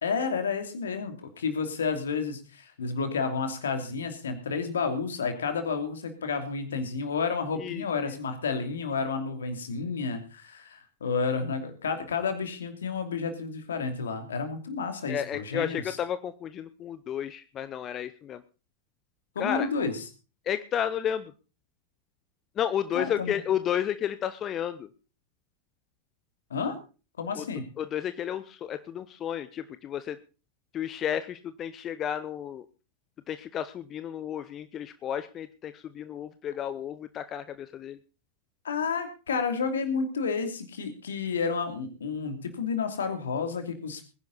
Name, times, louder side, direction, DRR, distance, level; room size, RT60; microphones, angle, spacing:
voice 1, 0.0-16.0 19.3-20.0 22.9-23.4 26.5-26.8 27.2-27.7 38.6-44.0, left 5 dB, 65° left, 7 dB, 2.8 m, -31 dB
voice 2, 7.6-8.1 15.1-18.4 19.4-19.7 20.5-21.3 22.6-24.9 27.3-27.4 27.8-30.2 30.7-32.6 33.3-38.0, left 9 dB, 30° left, 14 dB, 0.8 m, -32 dB
20.5 x 10.5 x 4.1 m, 0.34 s
figure-of-eight pair, 90°, 0 cm